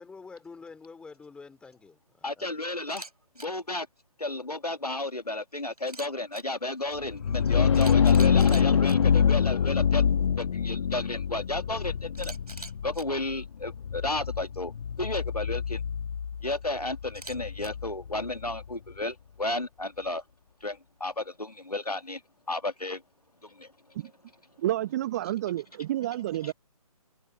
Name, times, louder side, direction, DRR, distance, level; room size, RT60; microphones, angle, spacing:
voice 1, 0.0-2.6, left 4 dB, 5° left, 3.0 m, -47 dB
voice 2, 2.2-3.1 3.4-3.9 4.2-10.0 10.4-14.7 15.0-15.8 16.4-20.2 20.6-22.2 22.5-23.0 23.4-23.7 26.4-26.5, left 2 dB, 90° left, 2.0 m, -33 dB
Camera, 2.8-3.1 3.4-3.5 5.8-6.4 7.3-7.4 7.7-9.0 12.1-13.0 17.1-17.7, right 2 dB, 80° right, 6.3 m, -43 dB
sound 1, 7.0-18.6, left 7 dB, 50° left, 1.4 m, -25 dB
voice 3, 24.6-26.5, right 14 dB, 25° right, 0.8 m, -30 dB
figure-of-eight pair, 140°, 19 cm